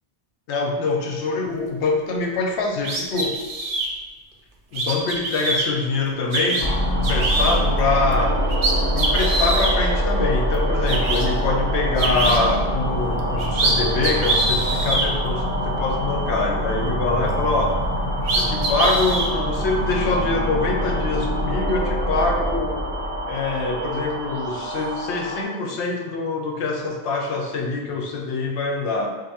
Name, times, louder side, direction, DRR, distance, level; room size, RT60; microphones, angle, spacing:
voice 1, 0.5-3.4 4.7-6.7 7.0-8.4 8.9-17.8 18.3-22.8 23.3-29.1, left 3 dB, 80° left, 1 dB, 0.9 m, -24 dB
sound 1, 2.8-3.9 4.7-5.7 6.3-6.6 7.0-7.6 8.1-8.2 8.5-9.7 10.5-10.6 10.9-11.2 12.0-12.4 13.2-13.7 14.0-15.1 17.8-17.9 18.2-19.3, right 2 dB, 60° right, 0.6 m, -23 dB
sound 2, 6.6-25.4, equal, 10° left, 0.6 m, -24 dB
5.1 x 2.0 x 2.7 m, 1.2 s
omnidirectional pair, 1.1 m